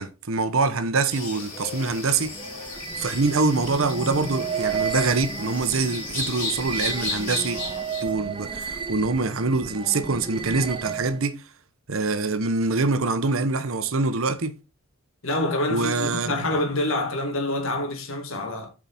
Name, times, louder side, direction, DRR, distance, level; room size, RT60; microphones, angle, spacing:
voice 1, 0.0-2.3 3.0-7.6 8.0-11.4 11.9-14.5 15.7-16.5, right 3 dB, 75° right, 0.9 m, -24 dB
sound 1, 1.1-8.0, left 3 dB, 40° left, 3.5 m, -34 dB
sound 2, 1.5-11.3, right 6 dB, 25° right, 0.6 m, -33 dB
voice 2, 15.2-18.7, left 1 dB, 70° left, 1.9 m, -26 dB
7.8 x 4.9 x 4.2 m
head